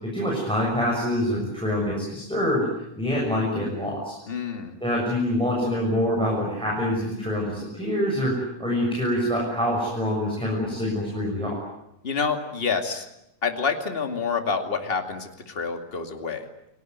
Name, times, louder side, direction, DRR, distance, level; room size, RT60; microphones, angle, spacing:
voice 1, 0.0-2.6 3.0-4.1 4.8-8.3 8.6-11.6, left 1 dB, ahead, -3 dB, 6.7 m, -25 dB
voice 2, 4.3-4.8 12.0-13.1 13.4-16.5, left 5 dB, 20° left, 5 dB, 2.2 m, -28 dB
29.5 x 19.5 x 9.4 m, 0.83 s
omnidirectional pair, 3.3 m